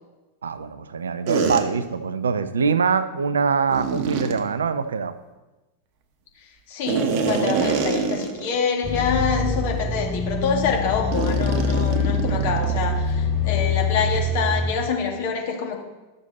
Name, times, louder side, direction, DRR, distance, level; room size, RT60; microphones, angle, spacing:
voice 1, 0.4-5.1, right 5 dB, 70° right, 13 dB, 0.5 m, -23 dB
sound 1, 1.3-1.6 3.7-4.4 6.9-8.6 8.9-9.1 9.7-9.8 11.1-12.9, right 5 dB, 45° right, 1.0 m, -25 dB
voice 2, 6.4-15.8, left 6 dB, 50° left, 2 dB, 1.9 m, -26 dB
sound 2, 8.8-14.7, left 3 dB, ahead, 1.7 m, -24 dB
12.0 x 6.6 x 4.1 m, 1.1 s
figure-of-eight pair, 90°, 0 cm